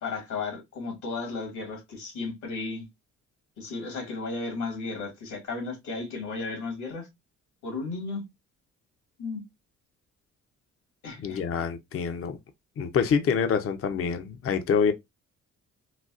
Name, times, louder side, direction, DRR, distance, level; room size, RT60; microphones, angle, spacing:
voice 1, 0.0-2.9 3.6-7.1 7.6-8.3 9.2-9.4 11.0-11.4, left 3 dB, 70° left, 2.0 m, -34 dB
voice 2, 11.2-12.4 12.8-14.9, left 6 dB, 50° left, 0.6 m, -26 dB
4.0 x 2.2 x 2.4 m
cardioid pair, 90°, 30 cm